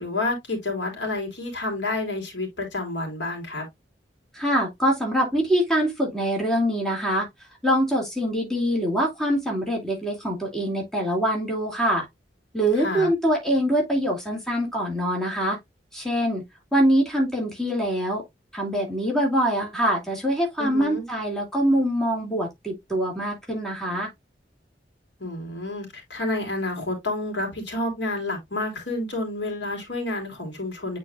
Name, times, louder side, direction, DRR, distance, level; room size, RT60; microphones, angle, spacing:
voice 1, 0.0-3.7 12.8-13.1 20.6-21.1 25.2-31.0, left 2 dB, 80° left, 3.5 m, -29 dB
voice 2, 4.3-7.3 7.6-12.0 12.5-15.6 15.9-16.4 16.7-18.2 18.5-24.1, equal, ahead, 2.8 m, -24 dB
9.0 x 4.5 x 2.5 m
head